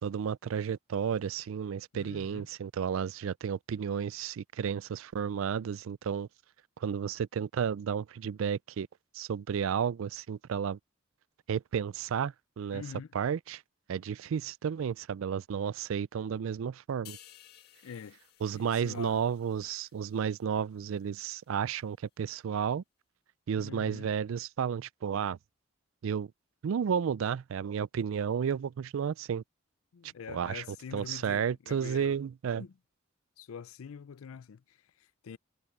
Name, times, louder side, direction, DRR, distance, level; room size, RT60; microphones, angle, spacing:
voice 1, 0.0-6.3 6.8-8.9 9.1-10.8 11.5-12.8 13.1-13.6 13.9-17.2 18.4-22.8 23.5-25.4 26.0-26.3 26.6-29.4 30.0-32.6, right 7 dB, 75° right, 0.4 m, -32 dB
voice 2, 1.9-2.5 12.7-13.1 17.8-18.2 18.5-19.2 23.6-24.1 29.9-32.2 32.6-32.7 33.4-35.4, left 6 dB, 85° left, 0.4 m, -45 dB
sound 1, 17.1-20.6 21.0-21.2, left 12 dB, 50° left, 2.0 m, -56 dB
head